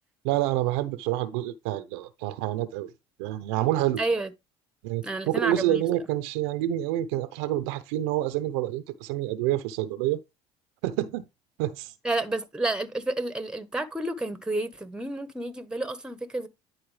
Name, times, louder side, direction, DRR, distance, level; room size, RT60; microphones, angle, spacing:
voice 1, 0.2-2.9 3.2-4.0 4.8-10.2 10.8-11.3 11.6-11.9, right 13 dB, 80° right, 0.7 m, -28 dB
voice 2, 4.0-4.3 5.0-5.8 12.0-16.5, right 2 dB, 5° right, 1.1 m, -30 dB
10.5 x 4.3 x 3.3 m
supercardioid pair, 80°, 13 cm